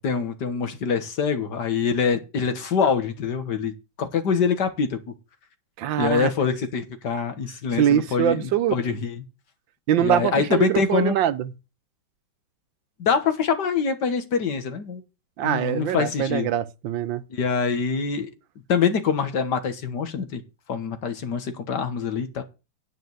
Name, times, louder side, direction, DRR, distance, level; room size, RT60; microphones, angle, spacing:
voice 1, 0.0-3.7 4.0-5.0 6.0-9.3 10.0-11.2 13.0-15.0 15.4-16.5 17.3-18.3 18.7-20.4 20.7-22.4, left 6 dB, 60° left, 2.0 m, -25 dB
voice 2, 5.8-6.3 7.7-8.8 9.9-11.5 15.4-17.2, right 10 dB, 80° right, 1.5 m, -23 dB
10.0 x 5.3 x 7.9 m
omnidirectional pair, 2.1 m